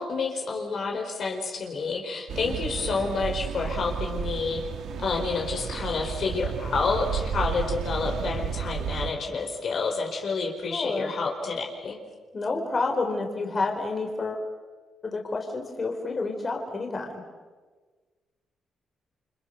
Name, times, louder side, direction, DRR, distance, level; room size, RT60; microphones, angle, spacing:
voice 1, 0.0-4.6 5.0-12.0, left 4 dB, 55° left, 1 dB, 4.8 m, -29 dB
sound 1, 2.3-9.1, right 7 dB, 75° right, 2.1 m, -32 dB
voice 2, 10.7-11.1 12.3-14.5 15.0-17.2, left 3 dB, 35° left, 2 dB, 4.8 m, -29 dB
30.0 x 25.5 x 6.8 m, 1.4 s
cardioid pair, 95°, 0 cm